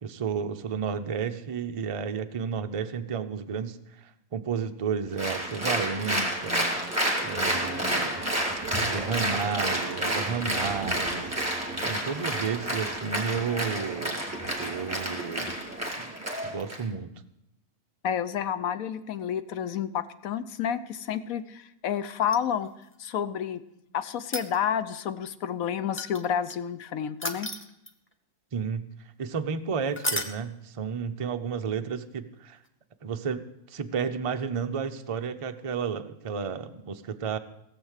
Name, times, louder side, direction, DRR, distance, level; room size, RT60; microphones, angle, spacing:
voice 1, 0.0-3.8 4.3-6.7 7.2-8.2 8.8-11.3 11.8-14.2 14.6-15.5 16.0-16.1 16.4-17.1 28.5-28.9 29.2-32.6 33.0-37.4, right 6 dB, 55° right, 8 dB, 0.3 m, -32 dB
Applause, 5.2-16.8, right 1 dB, 10° right, 2.1 m, -30 dB
voice 2, 18.0-22.7 23.0-23.6 23.9-27.5, left 8 dB, 70° left, 13 dB, 1.1 m, -30 dB
sound 1, 22.2-22.9 24.2-24.9 26.0-26.5 27.2-28.1 29.9-30.4 32.6-32.7, left 1 dB, 10° left, 0.6 m, -33 dB
17.5 x 7.3 x 6.5 m, 0.82 s
omnidirectional pair, 1.6 m